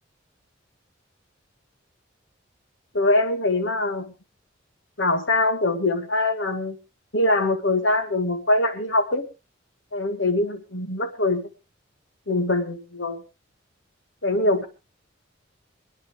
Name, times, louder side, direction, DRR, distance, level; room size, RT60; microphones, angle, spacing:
voice 1, 2.9-4.1 5.0-6.8 7.1-9.2 9.9-11.5 12.3-13.2 14.2-14.7, left 2 dB, 65° left, 7 dB, 2.0 m, -23 dB
25.0 x 9.9 x 3.4 m, 0.29 s
head